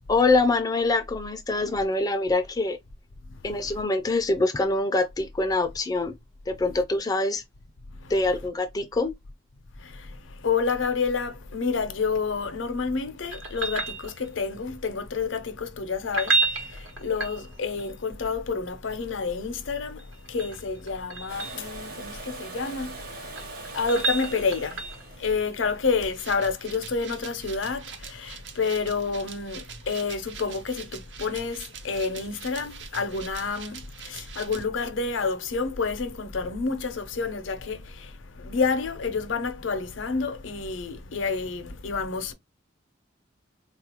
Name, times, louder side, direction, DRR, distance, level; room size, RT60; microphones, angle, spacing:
voice 1, 0.1-2.8 3.4-6.1 6.5-7.4 8.1-9.1, left 2 dB, 20° left, 0.3 m, -24 dB
voice 2, 3.4-3.8 8.0-8.1 9.8-23.0 23.7-24.8 25.2-42.3, left 4 dB, 85° left, 0.6 m, -29 dB
sound 1, 13.3-14.5 16.0-17.8 20.0-21.6 23.0-25.1 27.9-28.0, right 3 dB, 90° right, 1.1 m, -30 dB
Domestic sounds home sounds, 21.3-27.1 29.0-29.1, right 3 dB, 50° right, 0.9 m, -42 dB
sound 2, 26.1-34.6, right 7 dB, 65° right, 0.5 m, -44 dB
3.7 x 2.4 x 2.8 m
head